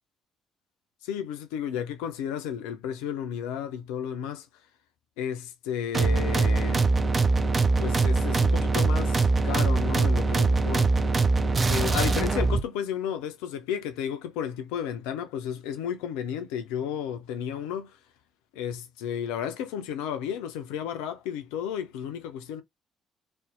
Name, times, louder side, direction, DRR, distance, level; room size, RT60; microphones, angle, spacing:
voice 1, 1.0-4.5 5.2-6.9 7.8-11.0 11.7-18.0 18.5-22.6, left 9 dB, 65° left, 0.4 m, -33 dB
sound 1, 5.9-12.6, right 3 dB, 30° right, 0.4 m, -23 dB
2.6 x 2.1 x 2.4 m
figure-of-eight pair, 45°, 0 cm